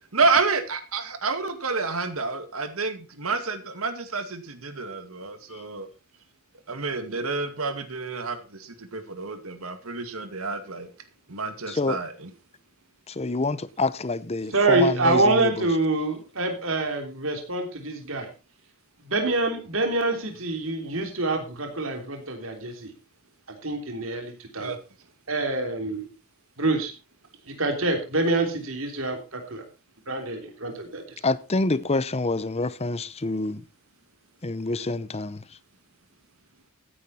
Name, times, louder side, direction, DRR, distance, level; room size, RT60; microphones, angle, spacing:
voice 1, 0.1-5.9 6.7-10.9 11.3-12.3 24.6-24.8, right 4 dB, 80° right, 2.2 m, -29 dB
voice 2, 11.7-12.0 13.1-15.7 31.2-33.6 34.4-35.4, left 2 dB, 30° left, 0.7 m, -27 dB
voice 3, 14.5-18.3 19.1-22.9 23.6-24.7 25.3-26.1 26.6-26.9 27.5-29.6 30.1-31.0, right 2 dB, 65° right, 3.4 m, -26 dB
15.5 x 9.9 x 4.3 m
head